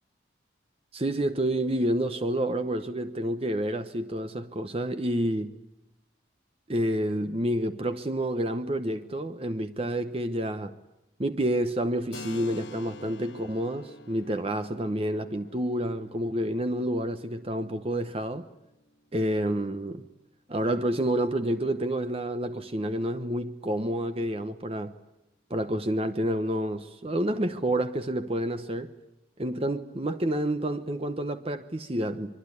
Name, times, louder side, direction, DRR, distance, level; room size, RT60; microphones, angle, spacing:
voice 1, 0.9-5.6 6.7-10.7 11.2-18.5 19.1-20.1 20.5-25.0 25.5-28.9 29.4-32.4, right 1 dB, 30° right, 0.9 m, -29 dB
Keyboard (musical), 12.1-19.5, left 2 dB, 85° left, 1.9 m, -48 dB
24.0 x 23.5 x 9.8 m
head